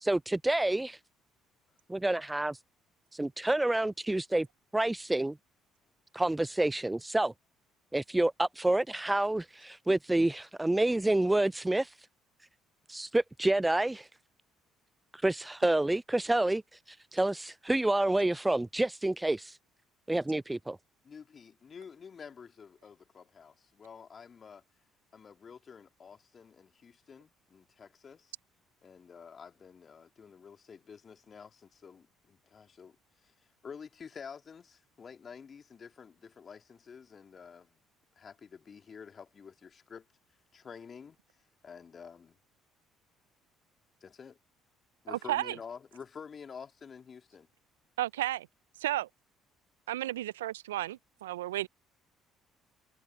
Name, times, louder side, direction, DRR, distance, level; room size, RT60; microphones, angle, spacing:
voice 1, 0.0-1.0 1.9-2.6 3.1-4.5 4.7-5.4 6.1-7.3 7.9-11.9 12.9-14.1 15.1-16.6 16.9-19.6 20.1-20.8, right 2 dB, 10° right, 0.3 m, -28 dB
voice 2, 21.0-24.6 25.1-28.3 28.8-33.0 33.2-33.3 33.6-37.8 38.2-40.0 40.5-41.2 41.6-42.4 44.0-44.4 45.0-47.5, left 6 dB, 40° left, 3.2 m, -49 dB
voice 3, 45.1-45.6 48.0-48.5 48.8-49.1 49.9-51.7, right 14 dB, 85° right, 0.5 m, -33 dB
hypercardioid pair, 55°, 0 cm